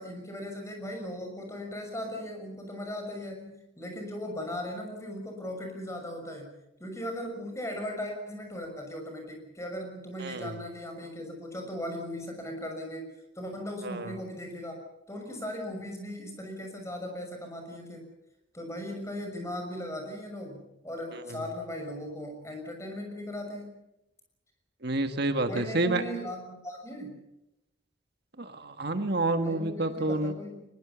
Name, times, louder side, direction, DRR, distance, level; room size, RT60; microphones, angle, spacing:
voice 1, 0.0-6.5 6.8-14.8 15.1-18.1 18.5-23.8 25.5-27.2 29.3-30.7, left 1 dB, 15° left, 3 dB, 6.3 m, -38 dB
voice 2, 10.2-10.6 13.8-14.2 21.1-21.4 24.8-26.0 28.4-30.3, right 2 dB, 55° right, 8 dB, 1.6 m, -29 dB
22.5 x 22.0 x 7.0 m, 0.89 s
head